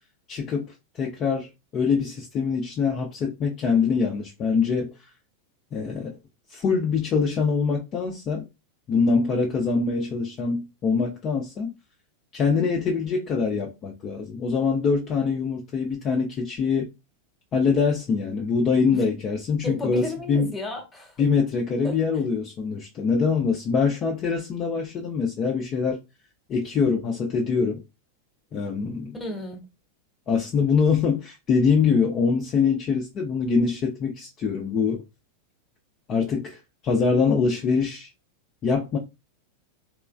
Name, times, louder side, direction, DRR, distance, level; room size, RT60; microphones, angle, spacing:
voice 1, 0.3-1.5 1.7-4.9 5.7-6.1 6.5-8.5 8.9-11.7 12.3-16.9 17.5-20.5 21.2-26.0 26.5-27.8 28.5-29.2 30.3-35.0 36.1-36.6 36.8-38.1 38.6-39.0, left 5 dB, 30° left, 0.6 m, -24 dB
voice 2, 19.7-21.1 21.8-22.0 29.1-29.6, left 2 dB, 10° left, 1.1 m, -33 dB
3.1 x 3.0 x 2.4 m
figure-of-eight pair, 90°, 0 cm